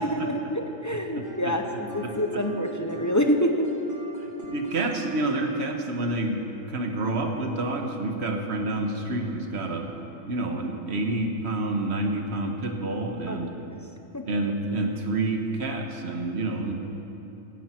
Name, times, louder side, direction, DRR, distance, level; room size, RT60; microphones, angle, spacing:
voice 1, 0.0-3.7 13.3-13.4 13.7-13.8 14.1-14.2, equal, 15° left, 4 dB, 0.7 m, -27 dB
sound 1, 1.2-7.1, right 2 dB, 15° right, 1.4 m, -39 dB
voice 2, 4.5-9.9 10.3-13.5 14.3-16.7, right 2 dB, 55° right, 3 dB, 1.6 m, -28 dB
17.5 x 16.0 x 4.5 m, 2.9 s
omnidirectional pair, 1.3 m